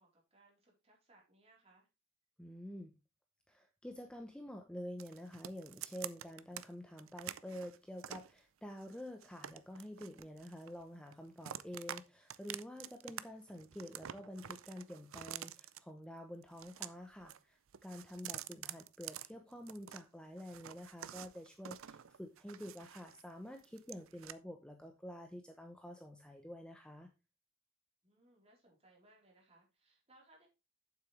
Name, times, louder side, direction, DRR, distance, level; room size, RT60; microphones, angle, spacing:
voice 1, 0.0-1.9 18.1-18.3 28.0-30.5, right 2 dB, 30° right, -2 dB, 4.0 m, -67 dB
voice 2, 2.4-2.9 3.5-27.1, equal, 5° left, 4 dB, 0.8 m, -48 dB
sound 1, 5.0-6.7 7.0-8.3 8.8-10.8 11.1-12.0 12.3-13.2 13.5-15.8 16.4-17.4 17.7-20.0 20.4-23.2 23.6-24.3, right 11 dB, 80° right, 0.5 m, -48 dB
8.8 x 7.9 x 3.3 m, 0.27 s
head